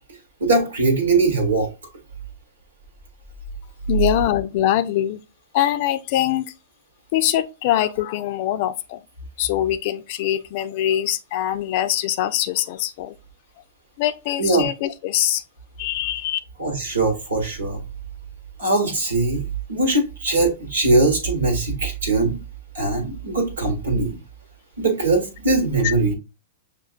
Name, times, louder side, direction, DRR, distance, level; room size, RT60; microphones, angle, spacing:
voice 1, 0.4-1.7 14.4-14.6 16.6-17.8 18.6-22.4 22.7-24.2 24.8-26.1, right 3 dB, 85° right, 1.2 m, -21 dB
voice 2, 3.9-5.2 5.5-6.5 7.1-9.0 9.4-13.2 14.0-15.4 15.8-16.4 25.8-25.9, left 12 dB, 55° left, 0.4 m, -23 dB
6.0 x 2.5 x 2.4 m
hypercardioid pair, 110°, 0 cm